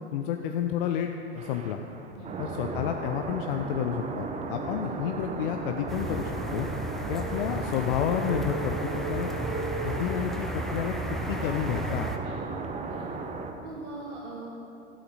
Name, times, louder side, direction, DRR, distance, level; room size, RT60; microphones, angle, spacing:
voice 1, 0.1-1.8 2.4-6.7 7.1-9.3 9.8-10.9 11.3-12.2, left 9 dB, 50° left, 5 dB, 0.7 m, -30 dB
sound 1, 1.4-13.5, right 4 dB, 20° right, 0.9 m, -35 dB
sound 2, 5.9-12.2, equal, ahead, 0.7 m, -35 dB
voice 2, 12.2-13.1 13.6-14.5, right 3 dB, 65° right, -7 dB, 2.6 m, -42 dB
15.5 x 8.4 x 4.2 m, 2.8 s
figure-of-eight pair, 90°, 35 cm